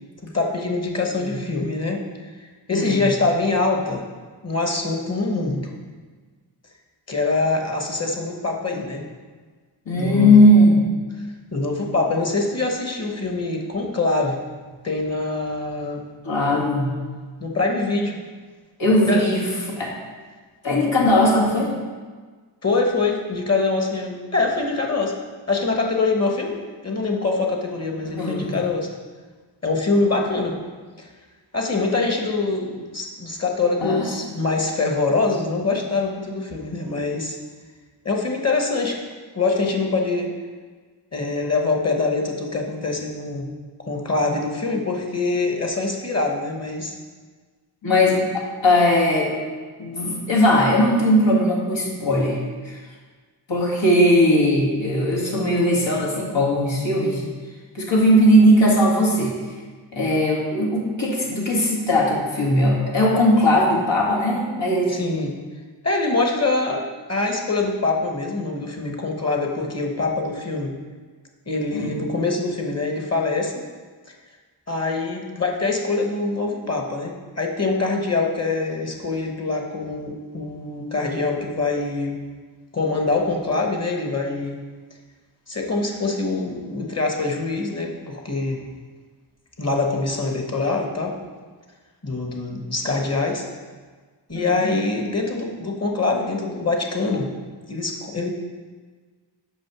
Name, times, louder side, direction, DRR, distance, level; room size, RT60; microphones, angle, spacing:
voice 1, 0.2-2.0 2.7-4.0 4.4-5.7 7.1-9.0 9.9-10.5 11.5-14.4 14.8-16.0 16.5-16.6 17.4-18.2 19.1-19.3 22.6-25.2 25.5-26.6 26.8-28.9 29.6-30.6 31.0-31.1 31.5-37.4 38.0-39.0 39.3-40.3 41.1-43.5 43.9-47.0 64.9-65.4 65.8-66.8 67.1-70.7 71.5-73.6 74.7-82.2 82.7-84.6 85.5-88.6 89.6-91.2 92.0-93.5 94.3-97.3 97.7-98.3, left 3 dB, 35° left, 1 dB, 1.2 m, -24 dB
voice 2, 2.7-3.1 9.9-10.8 16.2-17.0 18.8-19.5 19.8-19.9 20.6-21.7 28.0-28.5 33.8-34.0 47.8-49.4 49.8-52.4 52.6-52.8 53.5-57.2 57.7-59.4 59.9-64.9 71.7-72.0 94.3-94.7, left 1 dB, 80° left, -4 dB, 2.0 m, -18 dB
6.2 x 5.2 x 6.1 m, 1.5 s
wide cardioid pair, 85°, 44 cm